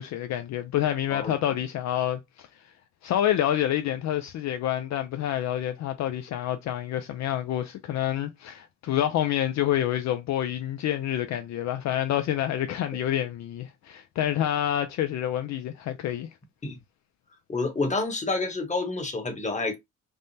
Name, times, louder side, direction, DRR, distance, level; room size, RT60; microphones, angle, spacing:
voice 1, 0.0-2.5 3.0-16.3, left 11 dB, 65° left, 0.4 m, -28 dB
voice 2, 17.5-19.8, left 3 dB, 25° left, 1.0 m, -28 dB
3.5 x 2.1 x 2.7 m
cardioid pair, 90°, 30 cm